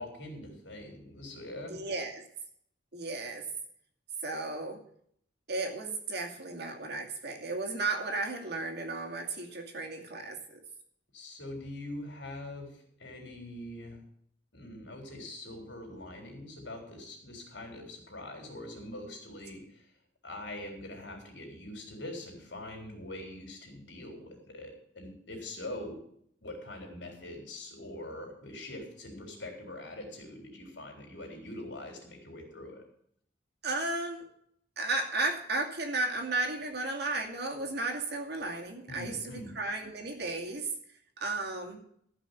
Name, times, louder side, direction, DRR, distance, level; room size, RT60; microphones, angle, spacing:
voice 1, 0.0-1.7 11.1-12.7 13.0-14.0 14.5-19.8 20.2-26.0 26.4-32.8 38.9-39.5, left 1 dB, 75° left, 2 dB, 4.3 m, -43 dB
voice 2, 1.7-2.2 2.9-3.5 4.2-4.8 5.5-10.6 33.6-34.2 34.8-40.7 41.2-41.8, right 2 dB, 60° right, 2 dB, 2.5 m, -34 dB
14.0 x 6.0 x 8.3 m, 0.66 s
head